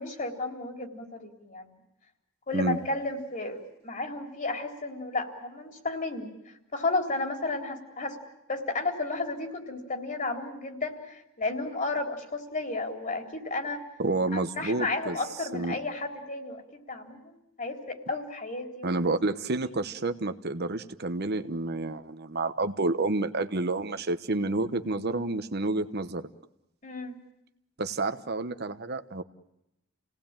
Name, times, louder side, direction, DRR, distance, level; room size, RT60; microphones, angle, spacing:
voice 1, 0.0-1.7 2.5-6.3 6.7-8.2 8.5-13.8 14.3-18.9 19.6-19.8 26.8-27.2, left 3 dB, 40° left, 4 dB, 3.8 m, -33 dB
voice 2, 14.0-15.2 15.5-15.8 18.8-26.3 27.8-29.2, right 2 dB, 55° right, 10 dB, 1.2 m, -29 dB
29.0 x 18.5 x 9.0 m, 0.86 s
head